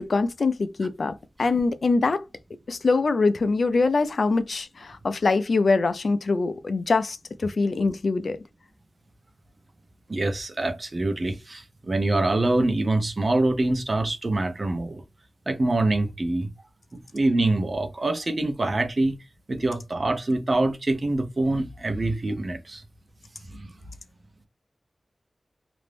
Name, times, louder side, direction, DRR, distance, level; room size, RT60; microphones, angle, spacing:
voice 1, 0.0-2.2 2.7-8.4, left 3 dB, 75° left, 0.3 m, -23 dB
voice 2, 10.1-15.0 15.5-16.5 16.9-19.2 19.5-22.8 23.4-23.7, right 2 dB, 50° right, 0.6 m, -25 dB
2.5 x 2.0 x 3.2 m
cardioid pair, 50°, 0 cm